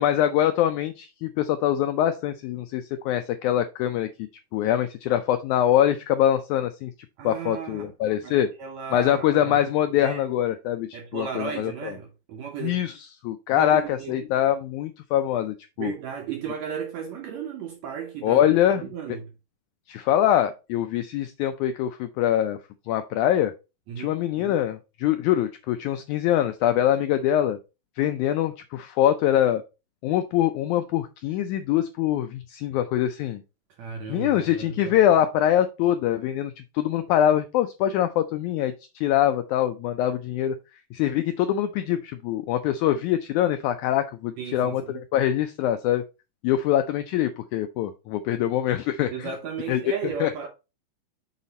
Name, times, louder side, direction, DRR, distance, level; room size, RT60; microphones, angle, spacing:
voice 1, 0.0-4.1 4.5-6.9 7.2-8.5 8.9-11.9 12.6-15.9 18.2-18.8 19.9-22.6 22.9-23.5 24.0-27.6 28.0-29.6 30.0-33.4 34.1-40.5 40.9-46.0 46.4-49.3 49.7-49.8 50.2-50.3, left 11 dB, 85° left, 1.7 m, -24 dB
voice 2, 7.2-7.9 8.2-9.6 10.0-10.2 10.9-12.8 13.5-14.2 15.8-18.5 18.8-19.3 23.9-24.2 33.8-35.0 44.4-45.0 49.1-50.5, right 7 dB, 75° right, 1.6 m, -35 dB
6.4 x 4.1 x 4.1 m
omnidirectional pair, 3.9 m